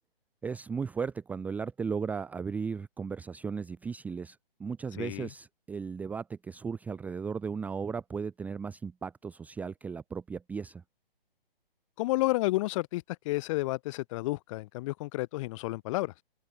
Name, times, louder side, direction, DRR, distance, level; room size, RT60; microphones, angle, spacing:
voice 1, 0.4-10.8, right 5 dB, 5° right, 0.8 m, -36 dB
voice 2, 5.0-5.3 12.0-16.1, left 20 dB, 35° left, 4.0 m, -31 dB
hypercardioid pair, 140°, 30 cm